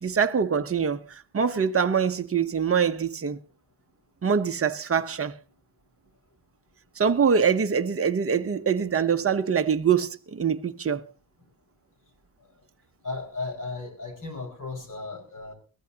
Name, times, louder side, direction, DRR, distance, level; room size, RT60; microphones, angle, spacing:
voice 1, 0.0-3.4 4.2-5.3 7.0-11.0, right 6 dB, 25° right, 0.9 m, -24 dB
voice 2, 13.0-15.5, left 3 dB, 40° left, 5.1 m, -35 dB
22.0 x 16.0 x 2.9 m
cardioid pair, 100°, 50 cm